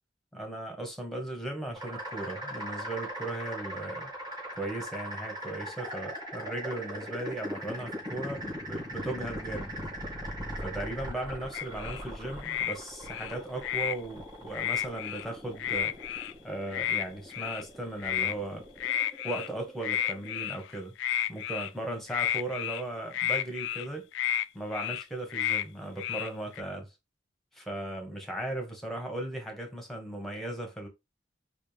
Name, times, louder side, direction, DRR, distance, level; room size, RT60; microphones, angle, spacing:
voice 1, 0.3-4.1 4.5-9.7 10.6-15.9 16.4-18.6 19.2-20.9 21.3-24.1 24.5-26.9 27.5-30.9, right 1 dB, ahead, 1.1 m, -37 dB
sound 1, 1.8-20.5, equal, 25° right, 1.7 m, -40 dB
sound 2, 11.5-12.0 12.4-12.7 13.0-14.0 14.5-15.2 15.6-16.3 16.7-17.0 17.3-17.6 18.0-18.3 18.8-19.5 19.8-20.7 21.0-21.7 22.1-22.8 23.1-23.9 24.1-24.4 24.7-25.0 25.3-25.6 26.0-26.6, left 10 dB, 75° left, 0.3 m, -31 dB
4.2 x 2.5 x 3.3 m
head